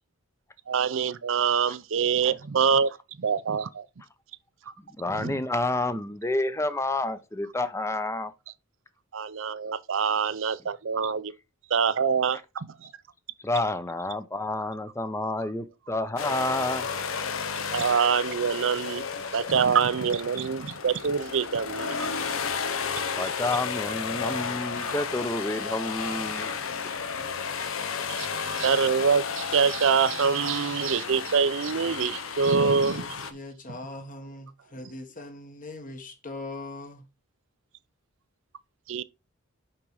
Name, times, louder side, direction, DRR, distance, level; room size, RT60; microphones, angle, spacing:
voice 1, 0.7-3.9 5.1-5.4 9.1-11.3 11.7-12.9 17.7-19.0 19.3-22.1 24.8-24.9 28.1-28.3 28.5-33.0 38.9-39.0, right 6 dB, 65° right, 0.5 m, -25 dB
voice 2, 5.0-8.3 13.4-16.9 23.2-26.6 26.8-26.9 27.6-27.7, left 2 dB, 15° left, 0.7 m, -29 dB
sound 1, 16.2-33.3, left 6 dB, 75° left, 0.9 m, -33 dB
voice 3, 32.6-37.1, left 2 dB, 40° left, 1.5 m, -40 dB
6.0 x 5.3 x 4.8 m
head